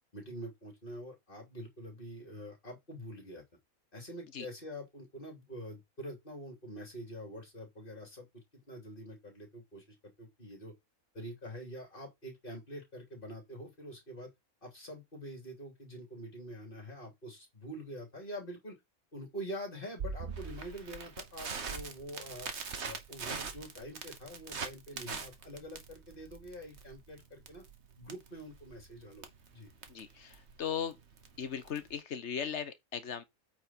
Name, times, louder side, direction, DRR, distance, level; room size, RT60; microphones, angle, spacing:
voice 1, 0.1-3.4 3.9-8.3 8.7-10.7 11.1-14.3 14.6-18.8 19.1-22.5 22.8-27.6 28.0-29.7, equal, 35° left, 3.4 m, -45 dB
Crackle, 20.0-32.0, right 5 dB, 50° right, 1.6 m, -43 dB
voice 2, 29.9-31.0 31.4-33.2, left 8 dB, 55° left, 1.4 m, -38 dB
8.7 x 4.8 x 4.4 m
omnidirectional pair, 1.5 m